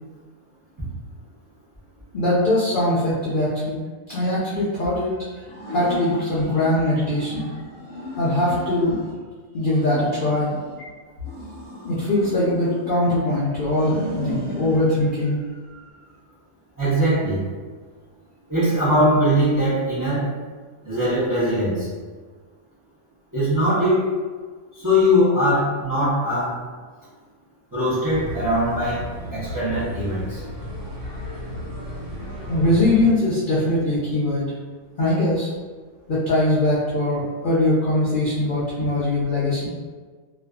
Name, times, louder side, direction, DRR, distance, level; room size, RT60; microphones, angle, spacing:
voice 1, 2.1-3.8 4.1-5.4 5.7-7.5 8.2-9.0 9.5-10.5 11.8-15.4 15.7-15.8 32.5-34.5 35.0-35.5 36.1-39.7, left 1 dB, 75° left, -7 dB, 0.4 m, -21 dB
sound 1, 5.4-6.7 7.1-9.2 9.5-10.8 11.2-13.1 13.6-14.8, equal, 25° left, 0.6 m, -35 dB
voice 2, 16.8-17.4 18.5-20.3 20.8-21.9 23.3-24.1 24.8-26.6 27.7-30.4, equal, 25° right, -10 dB, 0.5 m, -21 dB
sound 2, 28.1-33.1, equal, 65° right, 1.2 m, -34 dB
2.5 x 2.3 x 2.2 m, 1.5 s
omnidirectional pair, 1.5 m